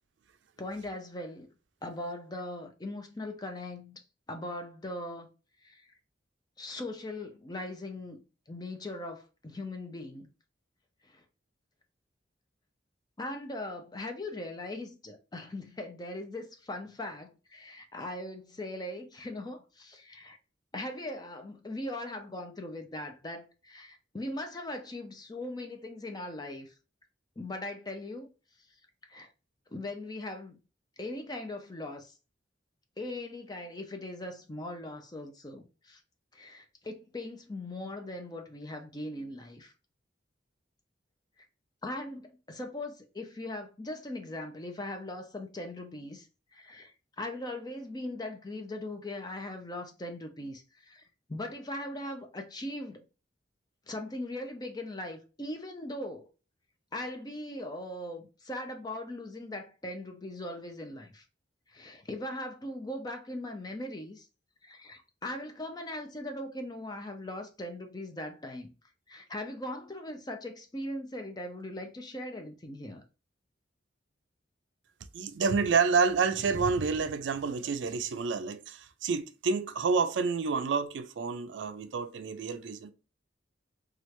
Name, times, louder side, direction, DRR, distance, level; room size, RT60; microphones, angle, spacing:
voice 1, 0.6-1.5 1.8-4.0 4.3-5.3 5.6-5.8 6.6-8.2 8.5-10.3 11.0-11.2 13.2-20.4 20.7-26.7 27.4-28.3 29.1-29.3 29.7-30.6 31.0-32.1 33.0-36.0 36.3-39.7 41.8-46.3 46.5-51.0 51.3-53.0 53.9-56.3 56.9-61.2 61.7-64.3 64.6-68.7 69.1-73.0, left 1 dB, 20° left, 0.5 m, -40 dB
voice 2, 75.1-82.9, right 5 dB, 75° right, 0.4 m, -29 dB
3.0 x 2.4 x 3.1 m
head